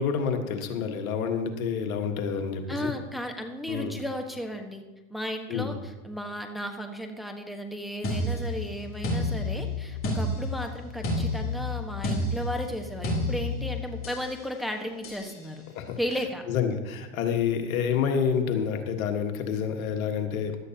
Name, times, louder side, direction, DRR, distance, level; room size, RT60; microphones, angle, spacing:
voice 1, 0.0-2.9 3.7-3.9 5.5-5.7 15.7-16.0 16.5-20.6, left 7 dB, 80° left, 5 dB, 1.6 m, -28 dB
voice 2, 2.7-4.8 5.1-15.6 16.0-16.4, equal, ahead, 3 dB, 1.3 m, -34 dB
sound 1, 8.0-14.3 15.0-15.3, left 1 dB, 30° left, 3.4 m, -30 dB
16.5 x 12.0 x 2.9 m, 1.1 s
hypercardioid pair, 95°, 41 cm